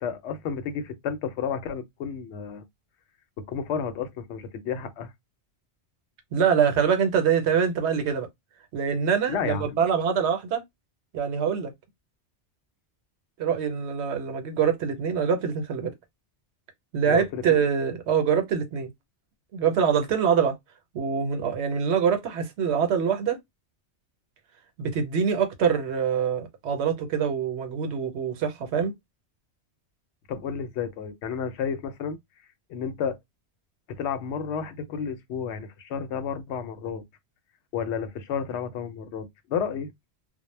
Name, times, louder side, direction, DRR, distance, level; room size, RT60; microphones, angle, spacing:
voice 1, 0.0-2.6 3.4-5.1 9.3-9.8 17.1-17.6 30.3-32.2 32.7-33.2 34.0-37.0 37.7-39.9, left 7 dB, 85° left, 0.9 m, -31 dB
voice 2, 6.3-8.3 8.7-10.6 11.1-11.7 13.4-15.9 16.9-18.9 19.5-20.6 20.9-23.4 24.8-28.9, right 7 dB, 90° right, 1.0 m, -24 dB
2.1 x 2.1 x 3.1 m
omnidirectional pair, 1.1 m